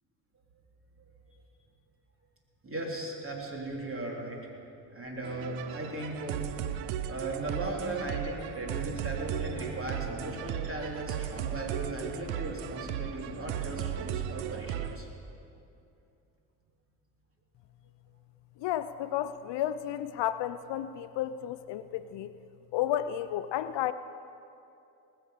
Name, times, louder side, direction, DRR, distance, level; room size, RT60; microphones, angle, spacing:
voice 1, 2.6-4.4 4.9-6.4 7.1-15.1, right 2 dB, 30° right, -1 dB, 3.5 m, -37 dB
sound 1, 5.2-15.0, right 10 dB, 85° right, 0.7 m, -36 dB
voice 2, 18.6-22.3 22.7-23.9, left 11 dB, 65° left, 13 dB, 0.6 m, -32 dB
19.5 x 7.1 x 6.6 m, 2.7 s
supercardioid pair, 60°, 46 cm